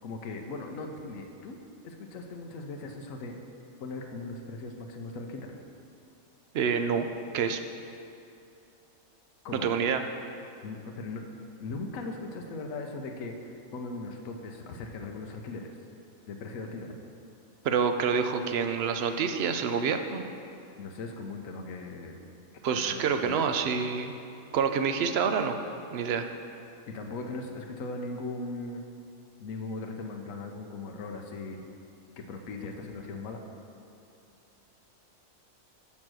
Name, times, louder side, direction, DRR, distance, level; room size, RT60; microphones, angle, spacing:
voice 1, 0.0-1.6 1.8-3.4 3.8-5.5 9.4-9.7 10.6-11.2 11.6-15.8 16.3-17.0 20.8-22.2 22.7-23.4 26.9-28.8 29.4-31.6 32.2-33.4, left 3 dB, 75° left, 3 dB, 1.1 m, -39 dB
voice 2, 6.5-7.1 7.3-7.6 9.5-10.0 17.6-20.2 22.6-24.1 24.5-25.5 25.9-26.3, right 6 dB, 60° right, 7 dB, 0.7 m, -27 dB
7.1 x 6.4 x 6.1 m, 2.6 s
omnidirectional pair, 1.4 m